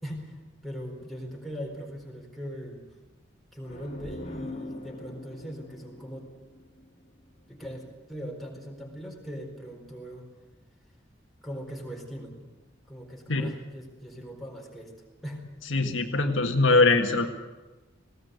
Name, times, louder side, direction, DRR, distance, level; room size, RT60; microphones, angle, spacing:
voice 1, 0.0-2.8 3.5-6.3 7.5-10.3 11.4-12.4 12.9-14.9 15.2-15.4, equal, ahead, -1 dB, 4.3 m, -40 dB
sound 1, 3.6-7.3, left 2 dB, 40° left, 2.2 m, -42 dB
voice 2, 15.7-17.3, left 3 dB, 80° left, 4 dB, 1.7 m, -22 dB
20.0 x 17.0 x 8.1 m, 1.2 s
head